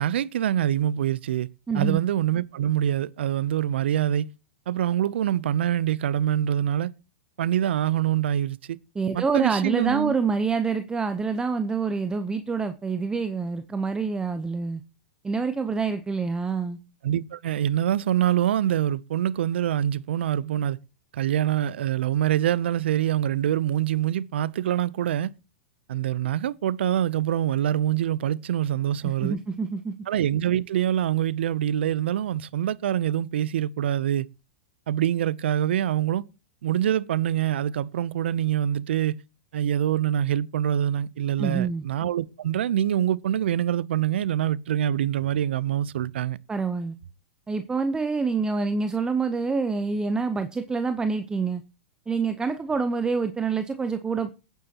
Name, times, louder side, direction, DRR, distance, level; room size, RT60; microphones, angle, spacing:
voice 1, 0.0-1.5 1.7-4.3 4.7-6.9 7.4-8.6 9.1-10.1 17.0-20.8 21.1-25.3 25.9-29.4 30.1-34.3 34.9-36.2 36.6-39.2 39.5-46.4, right 11 dB, 75° right, 0.6 m, -25 dB
voice 2, 1.7-2.0 8.9-14.8 15.2-16.8 29.0-30.0 41.4-41.8 46.5-46.9 47.5-51.6 52.1-54.3, right 4 dB, 10° right, 0.8 m, -26 dB
20.0 x 9.3 x 2.9 m
hypercardioid pair, 120°, 6 cm